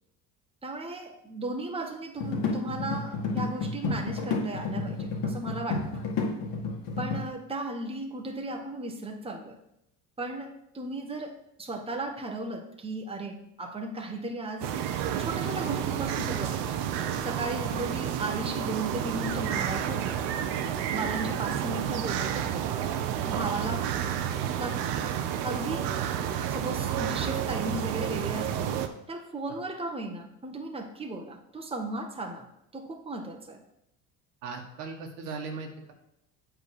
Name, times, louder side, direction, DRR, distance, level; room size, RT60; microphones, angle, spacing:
voice 1, 0.6-6.0 7.0-9.6 10.2-14.7 15.2-16.8 17.2-20.3 20.9-22.8 23.3-23.9 24.5-25.9 26.5-32.5 32.7-33.6, right 2 dB, 10° right, 3 dB, 1.2 m, -36 dB
sound 1, 2.2-7.3, left 4 dB, 50° left, 2.0 m, -31 dB
sound 2, 14.6-28.9, right 9 dB, 60° right, 0.9 m, -30 dB
voice 2, 34.4-35.9, right 4 dB, 80° right, 3 dB, 1.6 m, -38 dB
8.1 x 3.7 x 6.5 m, 0.78 s
hypercardioid pair, 85°, 46 cm